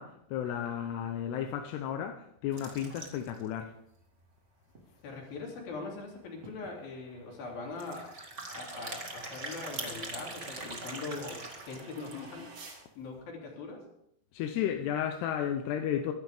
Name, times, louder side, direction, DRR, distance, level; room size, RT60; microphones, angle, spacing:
voice 1, 0.0-3.7 14.3-16.1, left 9 dB, 75° left, 2.6 m, -33 dB
sound 1, 2.5-3.4 3.9-4.0 4.2-4.3 4.7-4.8 6.1-6.2 6.4-6.7 7.7-12.4, right 2 dB, 70° right, 0.7 m, -42 dB
sound 2, 4.2-12.8, right 3 dB, 35° right, 3.6 m, -56 dB
voice 2, 5.0-8.1 8.4-12.5 12.9-13.8, left 3 dB, 55° left, 5.0 m, -41 dB
23.0 x 11.5 x 3.6 m
omnidirectional pair, 5.3 m